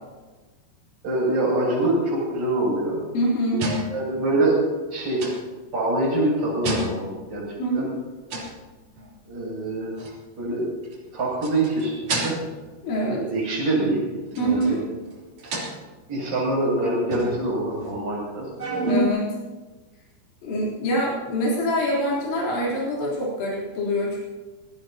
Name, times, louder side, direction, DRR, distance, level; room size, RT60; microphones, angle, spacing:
voice 1, 1.0-3.0 3.9-4.6 4.9-5.3 5.7-7.4 7.7-7.8 9.3-9.9 10.4-10.6 11.1-11.9 12.2-12.4 13.0-14.0 14.3-14.8 16.1-18.4, right 2 dB, 25° right, -6 dB, 7.9 m, -24 dB
voice 2, 3.1-3.6 7.6-7.9 12.8-13.2 14.4-14.8 18.8-19.3 20.4-24.2, equal, 85° left, -6 dB, 6.1 m, -25 dB
sound 1, 3.6-4.2 5.2-5.4 6.6-7.2 8.3-8.6 9.0-9.1 10.0-10.1 10.8-10.9 11.3-12.6 14.3-14.7 15.1-15.2 15.4-15.9 17.1-18.2 18.6-19.1, right 1 dB, 40° right, 4.3 m, -29 dB
27.5 x 17.5 x 2.9 m, 1.3 s
omnidirectional pair, 5.1 m